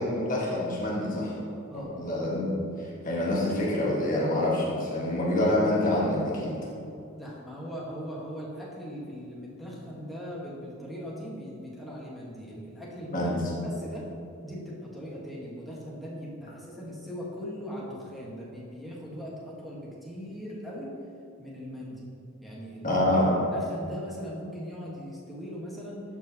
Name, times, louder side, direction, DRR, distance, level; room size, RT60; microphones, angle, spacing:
voice 1, 0.0-1.3 2.0-2.5 2.8-6.6 13.1-13.4 22.8-23.4, left 1 dB, 40° left, -5 dB, 1.5 m, -26 dB
voice 2, 7.1-13.3 13.6-14.1 14.4-20.9 21.4-22.0 22.4-23.0 23.5-26.0, equal, ahead, -6 dB, 1.2 m, -39 dB
12.0 x 4.7 x 2.8 m, 2.6 s
head